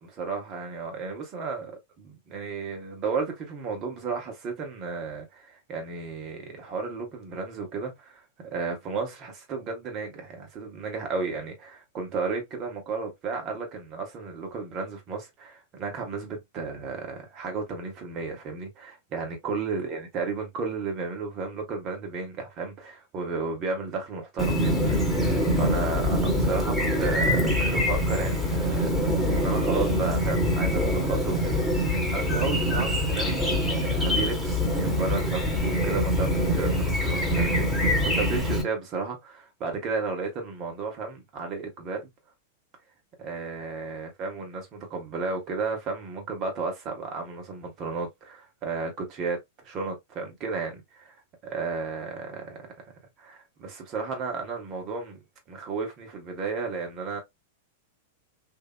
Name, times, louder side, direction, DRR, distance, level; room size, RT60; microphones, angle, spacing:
voice 1, 0.0-42.1 43.2-51.2 51.4-52.7 53.2-55.2 55.5-57.2, right 4 dB, 40° right, 1.4 m, -33 dB
Chirp tweet, 24.4-38.6, equal, ahead, 1.5 m, -24 dB
2.8 x 2.6 x 2.3 m
hypercardioid pair, 110°, 0 cm